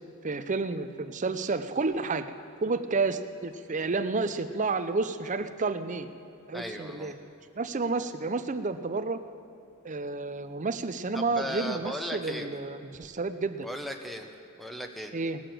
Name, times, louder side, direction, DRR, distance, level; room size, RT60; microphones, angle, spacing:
voice 1, 0.2-2.3 2.6-6.1 6.5-7.1 7.6-9.2 9.8-13.7 15.1-15.4, right 3 dB, 35° right, 10 dB, 0.6 m, -30 dB
voice 2, 6.5-7.1 11.1-12.5 13.6-14.3 14.6-15.1, equal, ahead, 4 dB, 0.9 m, -36 dB
19.5 x 6.8 x 7.6 m, 2.9 s
head